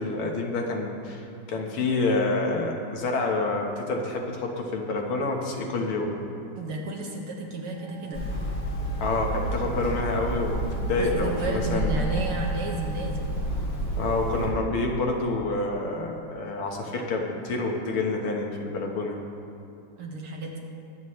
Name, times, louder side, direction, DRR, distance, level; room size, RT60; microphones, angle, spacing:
voice 1, 0.0-6.1 9.0-12.0 14.0-19.2, left 3 dB, 85° left, 1 dB, 2.2 m, -28 dB
voice 2, 6.6-8.2 11.0-13.4 20.0-20.6, right 3 dB, 85° right, -1 dB, 2.4 m, -32 dB
Wind instrument woodwind instrument, 7.6-12.9, right 2 dB, ahead, 0.8 m, -47 dB
Hammer, 8.1-14.5, right 1 dB, 50° left, 3.3 m, -30 dB
22.0 x 8.6 x 3.2 m, 2.7 s
omnidirectional pair, 2.4 m